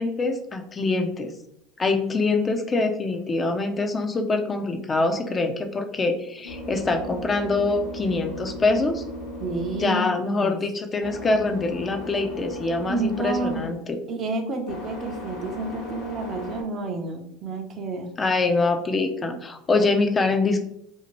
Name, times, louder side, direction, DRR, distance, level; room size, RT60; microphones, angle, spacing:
voice 1, 0.0-1.3 1.8-9.0 9.8-14.0 18.2-20.6, left 3 dB, 25° left, 5 dB, 0.4 m, -24 dB
sound 1, 5.8-16.6, left 1 dB, 70° left, 0.9 m, -37 dB
voice 2, 9.4-10.6 12.9-13.6 14.1-18.1 19.7-19.9, right 3 dB, 45° right, 4 dB, 0.6 m, -30 dB
2.6 x 2.4 x 3.0 m, 0.78 s
hypercardioid pair, 85°, 0 cm